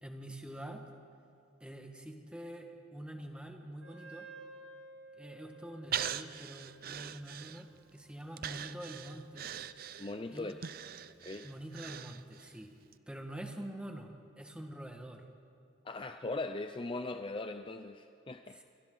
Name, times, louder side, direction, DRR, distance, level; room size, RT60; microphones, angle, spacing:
voice 1, 0.0-0.8 1.6-4.3 5.2-9.5 10.3-10.5 11.4-12.7 13.1-14.1 14.4-15.3 18.5-18.6, right 1 dB, 5° right, 3 dB, 1.6 m, -45 dB
Wind instrument woodwind instrument, 3.8-11.1, right 2 dB, 65° right, 2.3 m, -56 dB
Breathing, 5.9-7.9 8.4-12.6 12.9-13.0, right 9 dB, 50° right, 0.5 m, -41 dB
voice 2, 10.0-10.6 11.2-11.5 15.8-18.6, left 2 dB, 25° left, 8 dB, 0.5 m, -39 dB
28.0 x 25.0 x 3.9 m, 2.6 s
head